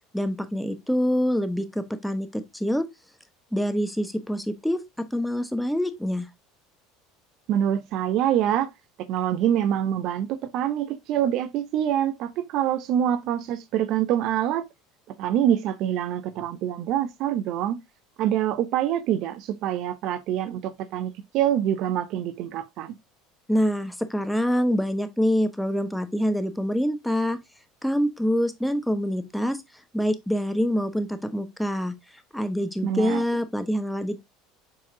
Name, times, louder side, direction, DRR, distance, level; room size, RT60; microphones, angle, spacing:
voice 1, 0.1-2.8 3.5-6.3 23.5-27.4 27.8-29.6 29.9-31.9 32.3-34.2, equal, ahead, 1.1 m, -25 dB
voice 2, 7.5-8.7 9.1-14.6 15.2-17.8 18.2-22.9 32.8-33.2, right 10 dB, 60° right, 0.6 m, -25 dB
7.1 x 4.8 x 2.7 m
hypercardioid pair, 80°, 0 cm